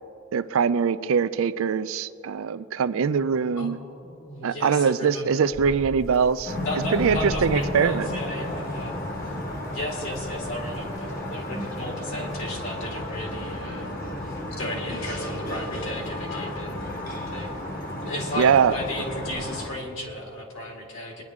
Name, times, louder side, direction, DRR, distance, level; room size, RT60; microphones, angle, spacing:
voice 1, 0.3-3.8 4.4-6.5 6.9-8.1 18.4-18.8, right 6 dB, 65° right, 14 dB, 0.4 m, -22 dB
voice 2, 4.0-5.6 6.6-9.0 9.2-9.3 9.7-14.3 14.6-16.8 17.1-17.5 18.0-21.2, left 1 dB, 60° left, 0 dB, 2.3 m, -34 dB
sound 1, 5.5-12.5, equal, 15° left, 0.5 m, -43 dB
sound 2, 6.4-19.7, left 1 dB, 40° left, 1.3 m, -33 dB
23.5 x 10.5 x 3.6 m, 2.9 s
head